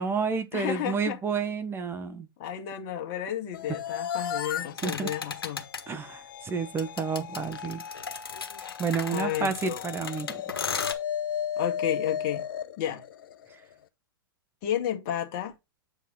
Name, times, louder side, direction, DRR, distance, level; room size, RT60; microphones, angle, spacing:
voice 1, 0.0-2.3 4.8-5.1 5.9-7.8 8.8-10.4, right 5 dB, 20° right, 0.9 m, -30 dB
voice 2, 0.5-1.2 2.4-5.7 9.1-9.8 11.6-12.4 12.8-13.0 14.6-15.5, left 11 dB, 50° left, 1.8 m, -32 dB
sound 1, 3.5-13.7, left 8 dB, 65° left, 0.8 m, -35 dB
sound 2, 4.8-5.8 6.8-10.9, left 6 dB, 85° left, 1.3 m, -36 dB
8.0 x 4.7 x 3.6 m
hypercardioid pair, 110°, 12 cm